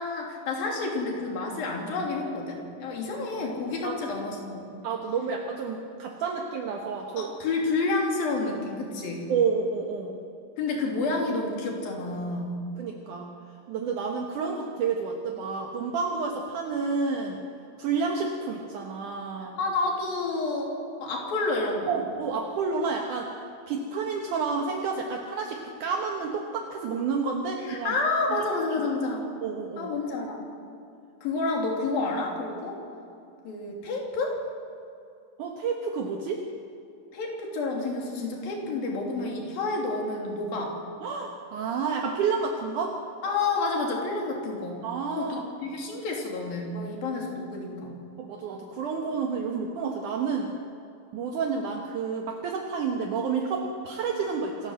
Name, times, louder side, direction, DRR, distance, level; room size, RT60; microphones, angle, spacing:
voice 1, 0.0-4.7 7.2-9.3 10.6-12.6 19.6-22.0 27.7-29.2 29.8-30.5 31.2-32.8 33.4-34.4 37.1-40.8 43.2-44.8 45.2-48.0, left 3 dB, 80° left, 0 dB, 4.9 m, -29 dB
voice 2, 4.8-7.3 9.3-10.2 12.8-13.3 13.7-17.4 17.8-19.6 21.9-23.3 23.7-28.0 29.4-29.9 35.4-36.4 41.0-42.9 44.8-45.5 48.2-50.5 51.1-54.7, right 5 dB, 65° right, 1 dB, 2.6 m, -30 dB
26.5 x 14.0 x 7.8 m, 2.5 s
omnidirectional pair, 4.1 m